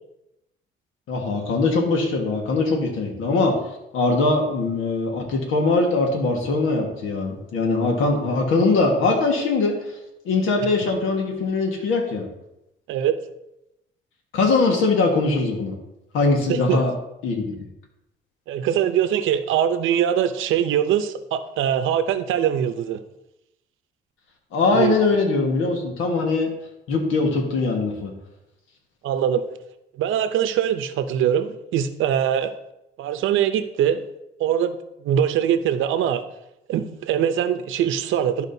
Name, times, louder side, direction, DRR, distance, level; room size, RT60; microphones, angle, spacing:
voice 1, 1.1-3.5 3.9-9.7 10.2-12.3 14.3-15.7 16.1-16.9 17.2-17.4 24.5-26.5 26.9-28.1, left 3 dB, 85° left, 1 dB, 1.6 m, -21 dB
voice 2, 16.5-16.9 18.5-23.0 24.7-25.1 29.0-29.5 30.0-32.5 33.0-34.0 34.4-36.2 36.7-38.4, right 9 dB, 85° right, 10 dB, 0.7 m, -22 dB
12.5 x 4.9 x 2.7 m, 0.88 s
cardioid pair, 90°, 20 cm